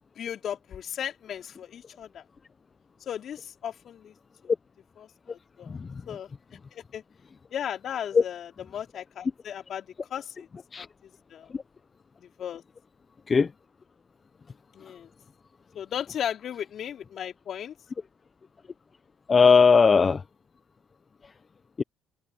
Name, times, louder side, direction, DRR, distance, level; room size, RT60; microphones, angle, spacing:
voice 1, 0.2-2.2 3.1-4.1 5.0-5.8 6.1-6.3 6.7-7.0 7.5-10.5 10.8-11.5 12.2-12.6 14.7-15.1 15.7-17.7, left 9 dB, 60° left, 3.7 m, -36 dB
voice 2, 19.3-20.2 21.8-21.9, left 5 dB, 35° left, 0.9 m, -18 dB
supercardioid pair, 70°, 0 cm